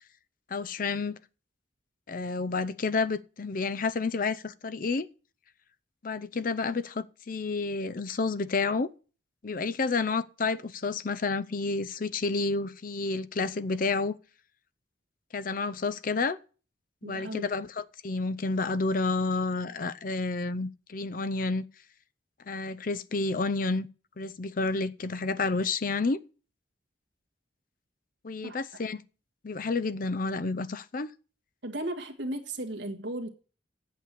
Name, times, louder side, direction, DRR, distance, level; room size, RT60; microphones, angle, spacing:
voice 1, 0.5-1.2 2.1-5.1 6.0-8.9 9.4-14.2 15.3-16.4 17.0-21.7 22.5-23.9 24.2-26.2 28.2-29.0 29.4-31.1, left 3 dB, 50° left, 0.6 m, -30 dB
voice 2, 17.0-17.5 28.4-28.6 31.6-33.3, right 1 dB, 70° right, 1.7 m, -35 dB
8.4 x 6.8 x 7.3 m
head